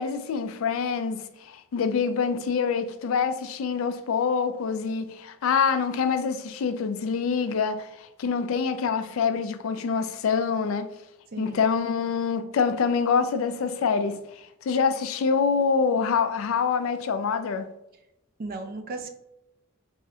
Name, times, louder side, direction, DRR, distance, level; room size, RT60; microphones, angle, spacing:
voice 1, 0.0-10.9 11.4-17.7, left 5 dB, 70° left, 0.3 m, -26 dB
voice 2, 11.3-11.7 18.4-19.1, right 3 dB, 45° right, 0.3 m, -35 dB
3.5 x 2.1 x 2.7 m
head